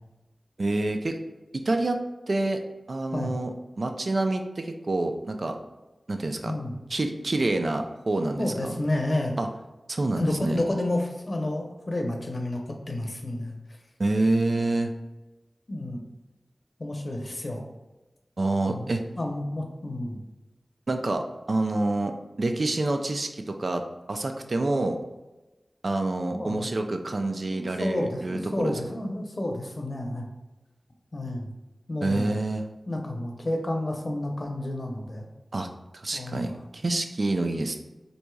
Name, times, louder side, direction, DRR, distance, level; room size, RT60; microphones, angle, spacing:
voice 1, 0.6-1.2 1.5-2.0 2.3-2.6 2.9-3.5 3.8-5.6 6.1-6.5 6.9-8.8 9.4-9.5 9.9-10.6 14.0-14.9 18.4-19.0 20.9-23.8 24.1-25.0 25.8-28.7 32.0-32.6 35.5-35.7 35.9-37.8, right 2 dB, 65° right, 5 dB, 0.4 m, -27 dB
voice 2, 8.4-9.4 10.2-13.6 15.7-16.0 16.8-17.6 18.7-18.9 19.2-20.2 26.3-26.7 27.5-30.3 31.1-31.5 31.9-32.4 32.9-35.3 36.1-36.6, left 1 dB, 50° left, 2 dB, 0.7 m, -30 dB
4.4 x 2.7 x 2.3 m, 1.1 s
wide cardioid pair, 45°, 0 cm